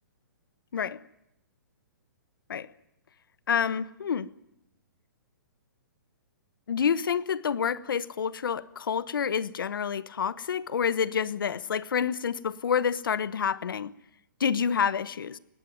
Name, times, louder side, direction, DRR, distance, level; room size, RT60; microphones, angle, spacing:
voice 1, 3.5-4.3 6.7-13.9 14.4-15.4, left 7 dB, 80° left, 1.1 m, -28 dB
20.0 x 17.0 x 9.4 m
hypercardioid pair, 150°, 11 cm